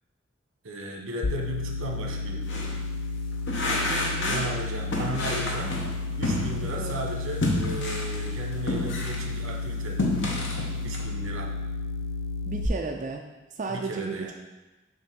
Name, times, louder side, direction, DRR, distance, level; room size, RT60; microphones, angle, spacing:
voice 1, 0.6-2.4 4.3-5.8 6.2-10.0 10.8-11.5 13.7-14.3, right 1 dB, 80° right, 1 dB, 1.1 m, -35 dB
sound 1, 1.2-12.7, left 3 dB, 80° left, 0.5 m, -32 dB
sound 2, 2.4-2.8 3.5-4.6 4.9-6.9 7.4-9.3 9.7-11.0, left 2 dB, 60° left, 1.1 m, -29 dB
voice 2, 3.9-4.5 4.9-5.1 6.8-7.1 12.5-13.2 13.5-14.3, right 3 dB, 35° right, 1 dB, 0.4 m, -34 dB
7.2 x 3.5 x 5.2 m, 1.1 s
head